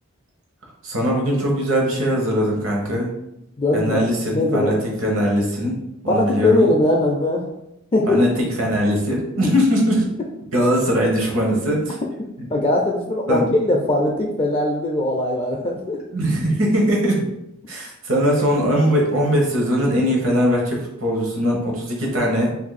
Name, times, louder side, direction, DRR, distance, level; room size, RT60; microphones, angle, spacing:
voice 1, 0.8-3.1 3.7-4.7 5.0-5.8 6.0-6.7 8.1-10.0 10.5-12.0 13.3-13.5 16.1-17.2 17.7-22.5, equal, 70° right, -1 dB, 1.0 m, -20 dB
voice 2, 3.6-4.1 4.3-4.8 6.1-7.5 7.9-8.2 12.5-16.0, left 1 dB, 25° left, 0 dB, 0.4 m, -20 dB
2.6 x 2.6 x 4.0 m, 0.85 s
head